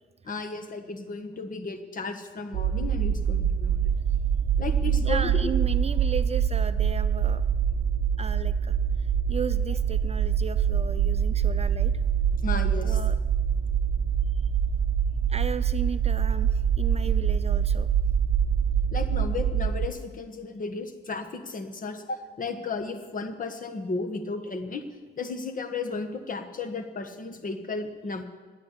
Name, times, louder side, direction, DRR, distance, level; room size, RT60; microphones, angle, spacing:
voice 1, 0.2-3.9 4.6-5.5 12.4-13.0 17.0-17.1 18.9-24.8 25.2-28.3, left 3 dB, 45° left, 7 dB, 1.6 m, -34 dB
sound 1, 2.5-19.9, right 8 dB, 75° right, 0.7 m, -25 dB
voice 2, 5.0-7.4 8.2-8.8 9.3-12.0 12.8-13.1 15.3-17.9, right 6 dB, 30° right, 12 dB, 0.5 m, -35 dB
10.5 x 9.0 x 9.8 m, 1.4 s
cardioid pair, 90°, 20 cm